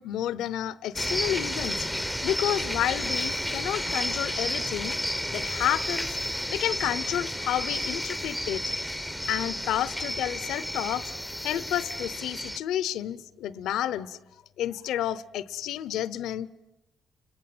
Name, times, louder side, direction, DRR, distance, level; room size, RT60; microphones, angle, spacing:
voice 1, 0.0-1.9 2.2-5.0 5.3-6.2 6.5-8.7 9.0-11.1 11.4-14.2 14.6-16.5, left 11 dB, 85° left, 0.9 m, -30 dB
sound 1, 1.0-12.6, equal, ahead, 0.9 m, -31 dB
30.0 x 22.0 x 7.9 m
cardioid pair, 90°, 0 cm